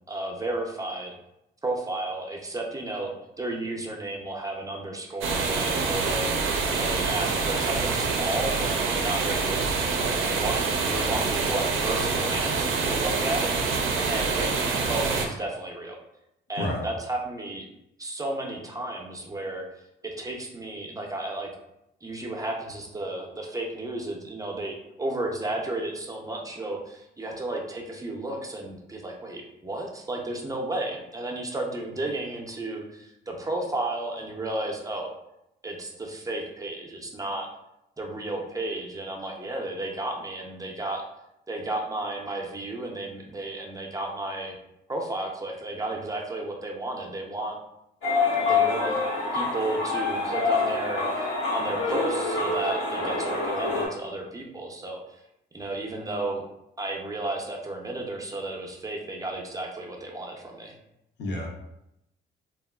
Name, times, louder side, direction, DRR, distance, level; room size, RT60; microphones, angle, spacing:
voice 1, 0.1-1.1 1.6-6.3 6.8-13.6 14.1-14.6 14.9-16.0 16.5-17.7 18.0-19.7 20.0-21.5 22.0-35.1 35.6-37.5 38.0-41.0 41.5-44.6 44.9-47.6 48.4-49.0 49.3-51.1 51.5-55.0 55.5-56.4 56.8-60.8, right 2 dB, 15° right, 1 dB, 0.5 m, -33 dB
sound 1, 5.2-15.3, right 4 dB, 80° right, 0.5 m, -26 dB
voice 2, 10.9-11.1 16.6-16.8 61.2-61.5, left 1 dB, 60° left, 0 dB, 0.7 m, -30 dB
sound 2, 48.0-53.9, left 3 dB, 85° left, 1.1 m, -26 dB
2.8 x 2.3 x 2.2 m, 0.83 s
cardioid pair, 90°, 20 cm